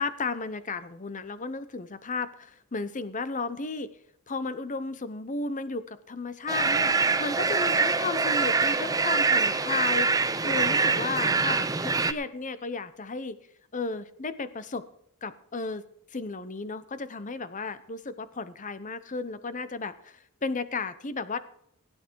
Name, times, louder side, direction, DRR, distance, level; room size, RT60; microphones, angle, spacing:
voice 1, 0.0-3.9 4.3-13.4 13.7-14.8 15.2-15.8 16.1-21.4, left 3 dB, 35° left, 14 dB, 0.8 m, -34 dB
sound 1, 6.5-12.1, right 4 dB, 15° right, 0.6 m, -24 dB
17.5 x 9.3 x 4.6 m, 0.71 s
head